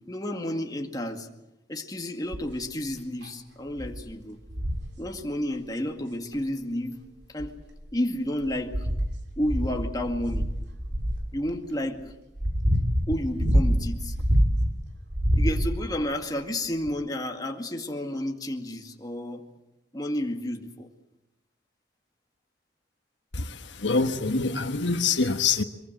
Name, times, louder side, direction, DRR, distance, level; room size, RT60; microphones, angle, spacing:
voice 1, 0.1-1.3 1.7-4.4 5.0-7.0 7.3-7.5 7.9-8.9 9.4-10.5 11.3-12.0 13.1-14.2 15.3-19.5 19.9-20.9, left 1 dB, 20° left, 2.0 m, -31 dB
sound 1, 2.3-2.6 3.2-3.3 3.8-4.0 4.5-4.9 6.3-6.4 7.2-7.9 8.4-11.3 12.0-14.8 15.1-16.0 16.9-17.0, equal, 70° right, 2.9 m, -26 dB
voice 2, 23.3-25.6, left 4 dB, 85° left, 1.4 m, -25 dB
24.0 x 22.5 x 7.8 m
head